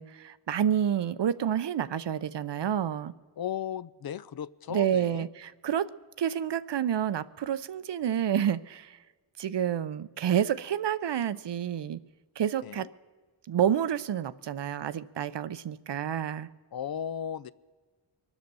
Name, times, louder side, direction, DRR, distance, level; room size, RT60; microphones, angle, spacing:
voice 1, 0.0-3.1 4.7-5.9 6.2-9.0 9.4-12.0 12.4-12.9 13.5-16.5, right 9 dB, 60° right, 15 dB, 0.6 m, -29 dB
voice 2, 3.4-5.3 12.6-12.9 16.7-17.5, left 9 dB, 50° left, 17 dB, 0.5 m, -36 dB
23.5 x 8.0 x 6.9 m, 1.4 s
cardioid pair, 45°, 47 cm